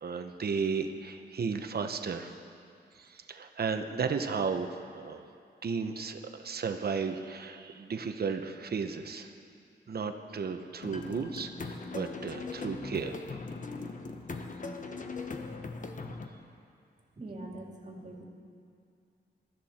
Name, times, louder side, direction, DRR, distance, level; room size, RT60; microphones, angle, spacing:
voice 1, 0.0-2.3 3.0-4.7 4.9-5.2 5.6-9.3 9.9-13.2, right 5 dB, 55° right, 7 dB, 1.0 m, -34 dB
sound 1, 10.8-16.3, left 3 dB, 45° left, 1.1 m, -40 dB
voice 2, 17.2-18.2, right 2 dB, 40° right, -1 dB, 2.4 m, -43 dB
22.5 x 13.5 x 4.4 m, 2.4 s
wide cardioid pair, 125°, 19 cm